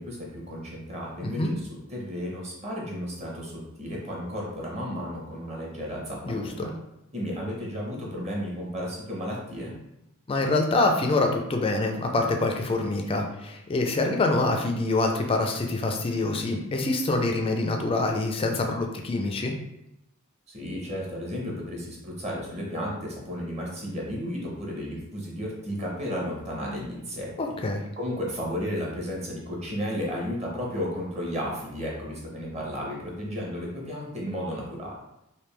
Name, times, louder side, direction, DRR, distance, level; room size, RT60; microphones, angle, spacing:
voice 1, 0.0-1.6 1.9-6.7 7.1-9.7 20.5-27.3 28.0-34.9, equal, 30° right, -3 dB, 0.9 m, -33 dB
voice 2, 6.2-6.7 10.3-19.5 27.4-27.8, left 2 dB, 25° left, 3 dB, 0.4 m, -25 dB
3.4 x 2.6 x 3.2 m, 0.85 s
head